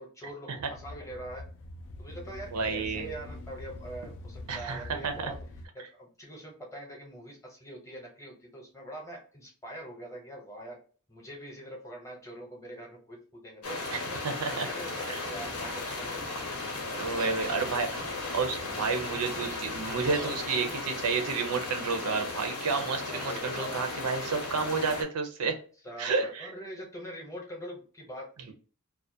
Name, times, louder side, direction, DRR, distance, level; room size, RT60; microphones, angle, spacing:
voice 1, 0.0-1.4 2.0-5.4 5.7-10.8 11.1-13.8 14.6-16.7 23.1-23.9 25.8-28.5, right 1 dB, 15° left, 0 dB, 0.7 m, -43 dB
sound 1, 0.7-5.7, left 2 dB, 60° left, 0.3 m, -44 dB
voice 2, 2.5-3.1 4.5-5.3 14.2-14.7 15.1-15.2 17.0-18.0 18.3-25.6 26.0-26.5, right 4 dB, 90° right, 6 dB, 0.5 m, -30 dB
sound 2, 13.6-25.0, left 3 dB, 85° left, 0.7 m, -36 dB
sound 3, 15.2-20.7, right 1 dB, 20° right, 0.4 m, -46 dB
2.3 x 2.1 x 2.6 m, 0.40 s
head